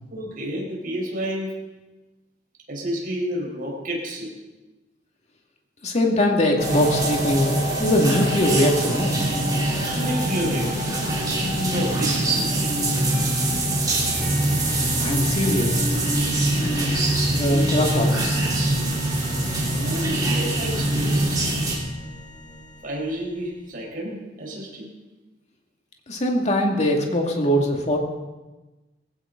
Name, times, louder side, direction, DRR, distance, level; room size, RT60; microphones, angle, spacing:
voice 1, 0.1-1.6 2.7-4.3 9.9-11.0 11.5-12.7 19.7-21.5 22.8-24.9, equal, 50° right, -2 dB, 4.8 m, -30 dB
voice 2, 5.8-9.2 14.3-15.8 16.6-17.0 17.3-18.4 26.1-28.0, left 1 dB, 40° left, 1 dB, 2.3 m, -22 dB
sound 1, 6.6-15.6, equal, 65° left, 3.2 m, -33 dB
sound 2, 6.6-21.8, right 1 dB, 20° right, 3.4 m, -23 dB
sound 3, 14.2-23.6, left 1 dB, 10° left, 3.1 m, -39 dB
18.5 x 16.0 x 3.9 m, 1.1 s
head